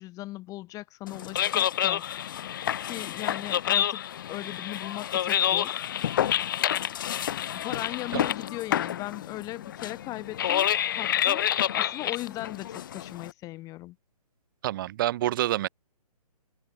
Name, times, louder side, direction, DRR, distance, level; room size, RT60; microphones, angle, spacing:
voice 1, 0.0-2.0 2.8-4.0 4.3-5.8 7.6-14.0, left 18 dB, 15° left, 2.3 m, -38 dB
sound 1, 1.1-13.3, left 11 dB, 30° left, 0.6 m, -28 dB
voice 2, 14.6-15.7, right 14 dB, 35° right, 3.3 m, -27 dB
figure-of-eight pair, 135°, 20 cm